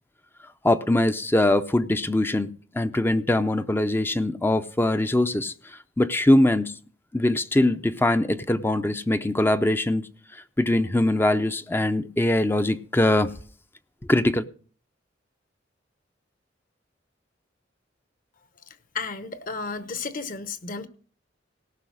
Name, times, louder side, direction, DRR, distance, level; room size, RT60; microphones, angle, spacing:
voice 1, 0.6-5.5 6.0-6.7 7.1-10.1 10.6-13.3 14.1-14.4, left 1 dB, 10° left, 0.5 m, -22 dB
voice 2, 18.9-20.9, left 4 dB, 45° left, 1.0 m, -33 dB
17.5 x 6.1 x 6.2 m
head